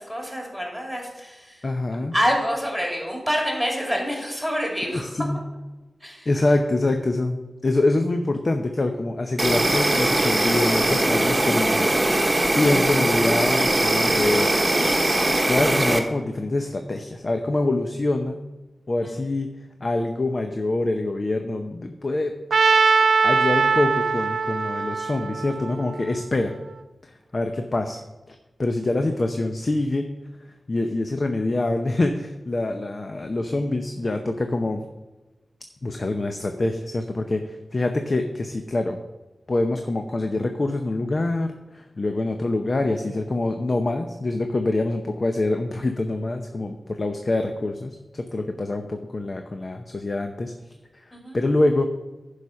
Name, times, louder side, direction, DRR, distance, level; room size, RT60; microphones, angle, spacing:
voice 1, 0.0-1.6 2.1-5.2 6.0-6.3 19.0-19.1 51.1-51.4, equal, 5° left, -1 dB, 2.9 m, -27 dB
voice 2, 1.6-2.1 4.9-5.4 6.3-7.4 7.6-11.9 12.5-14.5 15.5-18.4 18.9-19.5 19.8-22.3 23.2-26.5 27.0-28.0 28.3-30.1 30.7-34.8 35.8-39.0 39.5-50.5 51.1-51.9, left 2 dB, 45° left, 5 dB, 0.7 m, -25 dB
Insect, 9.4-16.0, right 1 dB, 25° right, 1.2 m, -21 dB
Trumpet, 22.5-26.6, right 5 dB, 85° right, 0.4 m, -21 dB
11.0 x 4.9 x 5.8 m, 1.1 s
wide cardioid pair, 90°, 0 cm